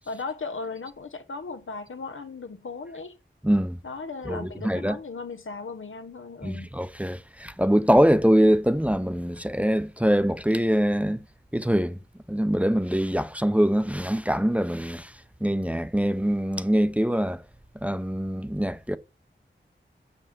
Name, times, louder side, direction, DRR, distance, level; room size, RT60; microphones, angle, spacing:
voice 1, 0.1-3.2 3.8-6.7, left 4 dB, 85° left, 1.0 m, -37 dB
voice 2, 3.4-3.8 4.2-5.0 6.4-11.2 11.5-12.0 12.3-17.4 17.8-19.0, equal, 5° right, 0.7 m, -23 dB
7.2 x 7.0 x 7.6 m
wide cardioid pair, 80°, 20 cm